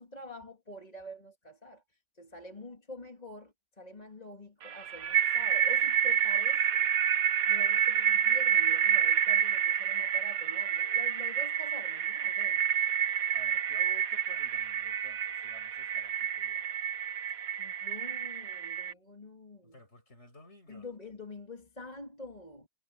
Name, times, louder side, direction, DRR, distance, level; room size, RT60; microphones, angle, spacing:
voice 1, 0.0-6.9 7.5-12.7 17.6-19.8 20.7-22.7, left 1 dB, 25° left, 2.6 m, -47 dB
sound 1, 4.6-18.9, right 9 dB, 70° right, 1.3 m, -28 dB
voice 2, 13.3-16.7 19.6-20.9, left 2 dB, 45° left, 8.4 m, -55 dB
omnidirectional pair, 1.6 m